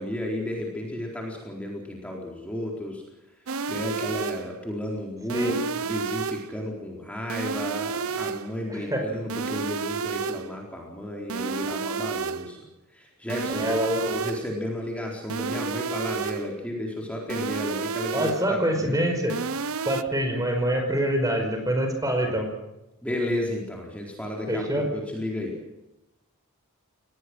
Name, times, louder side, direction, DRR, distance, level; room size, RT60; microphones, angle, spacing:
voice 1, 0.0-3.0 3.7-13.8 14.1-19.0 22.2-22.5 23.0-25.6, left 1 dB, 5° left, -1 dB, 4.2 m, -33 dB
sound 1, 3.5-4.6 5.3-6.6 7.3-8.6 9.3-10.6 11.3-12.6 13.3-14.6 15.3-16.6 17.3-18.6 19.3-20.0, right 5 dB, 75° right, 0.8 m, -31 dB
voice 2, 8.7-9.0 13.6-14.1 18.1-19.4 19.9-22.5 24.5-24.9, equal, 15° right, 4 dB, 5.0 m, -25 dB
26.5 x 20.0 x 6.3 m, 0.93 s
head